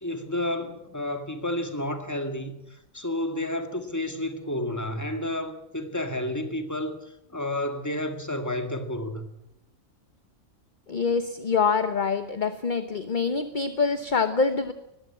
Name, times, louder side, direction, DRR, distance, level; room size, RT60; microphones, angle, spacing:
voice 1, 0.0-9.3, left 1 dB, 15° left, 2.0 m, -31 dB
voice 2, 10.9-14.7, left 5 dB, 40° left, 1.0 m, -25 dB
20.5 x 15.5 x 8.7 m
omnidirectional pair, 1.4 m